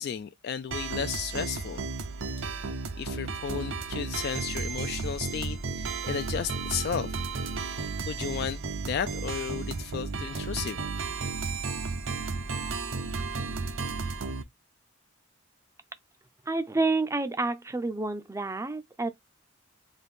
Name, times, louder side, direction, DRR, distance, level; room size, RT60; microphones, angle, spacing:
voice 1, 0.0-1.8 3.0-7.1 7.7-8.6 8.9-11.1, left 7 dB, 55° left, 0.3 m, -34 dB
sound 1, 0.7-14.4, right 4 dB, 80° right, 0.7 m, -33 dB
voice 2, 16.5-19.1, right 3 dB, 15° right, 0.4 m, -29 dB
4.0 x 2.6 x 3.5 m
head